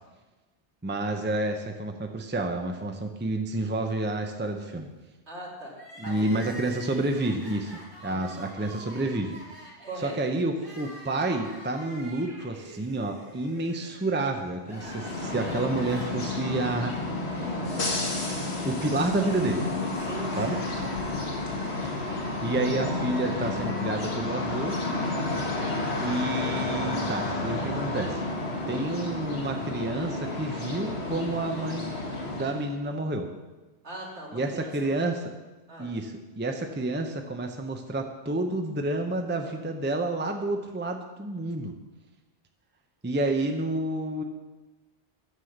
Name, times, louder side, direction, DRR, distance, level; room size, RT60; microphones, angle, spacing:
voice 1, 0.8-4.9 6.0-9.4 10.0-16.9 18.6-19.7 20.4-20.6 22.0-24.8 26.0-28.2 28.7-32.0 32.3-33.3 34.3-35.2 35.8-41.7 43.0-44.2, right 2 dB, 10° right, 4 dB, 0.7 m, -29 dB
voice 2, 5.3-6.9 8.0-8.2 9.8-10.2 20.0-21.2 21.7-22.1 26.4-26.7 28.7-28.9 33.8-34.9 35.7-35.9, right 1 dB, 75° right, -3 dB, 2.7 m, -41 dB
Crying sobbing, 5.7-19.9 20.2-20.3 21.2-22.4, equal, 25° right, 2.5 m, -48 dB
sound 1, 14.6-32.7, left 2 dB, 65° left, 2.1 m, -31 dB
9.7 x 7.6 x 6.5 m, 1.2 s
omnidirectional pair, 1.2 m